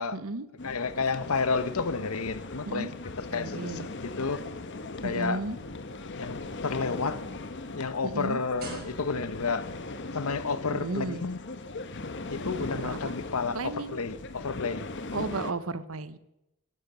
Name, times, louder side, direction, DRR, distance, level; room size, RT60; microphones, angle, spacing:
voice 1, 0.1-0.5 2.7-2.9 3.3-3.9 5.0-5.6 8.0-8.4 10.7-11.2 12.8-13.1 13.5-14.0 15.1-16.2, right 3 dB, 75° right, 1.0 m, -34 dB
voice 2, 0.6-2.9 3.2-4.4 5.0-5.4 6.2-6.4 6.6-7.2 7.7-9.7 10.1-11.4 12.3-14.9, left 4 dB, 90° left, 1.0 m, -31 dB
sound 1, 0.6-15.5, left 2 dB, 55° left, 1.2 m, -39 dB
sound 2, 6.4-9.6 10.4-10.6, right 3 dB, 45° right, 5.7 m, -46 dB
16.0 x 12.5 x 6.2 m
head